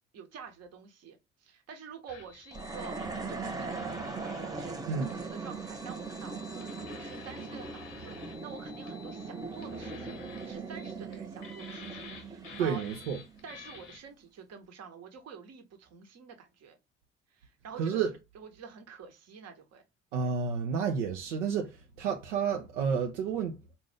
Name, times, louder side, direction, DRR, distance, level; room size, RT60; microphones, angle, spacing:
voice 1, 0.1-3.0 3.3-12.8 13.4-16.8 17.3-18.0 18.3-19.8, right 6 dB, 45° right, 1.0 m, -48 dB
sound 1, 2.1-14.0, left 4 dB, 75° left, 0.8 m, -49 dB
sound 2, 2.5-13.9, right 4 dB, 10° right, 0.5 m, -40 dB
voice 2, 4.9-5.2 12.6-13.2 17.8-18.1 20.1-23.8, right 6 dB, 75° right, 0.6 m, -31 dB
4.1 x 2.6 x 3.3 m
figure-of-eight pair, 50°, 37 cm